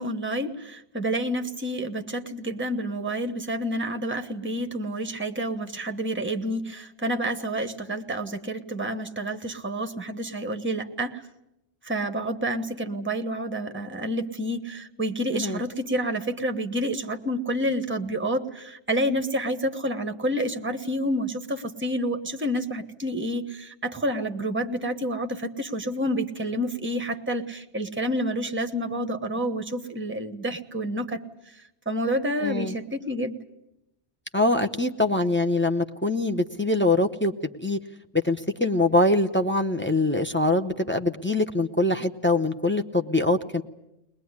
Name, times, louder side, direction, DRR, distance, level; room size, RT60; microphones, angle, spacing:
voice 1, 0.0-11.2 11.8-31.2 31.6-33.4, equal, 10° right, 7 dB, 1.1 m, -29 dB
voice 2, 32.4-32.7 34.3-37.3 37.6-37.8 38.1-43.6, left 2 dB, 10° left, 4 dB, 0.7 m, -23 dB
22.0 x 20.0 x 9.6 m, 0.90 s
omnidirectional pair, 1.2 m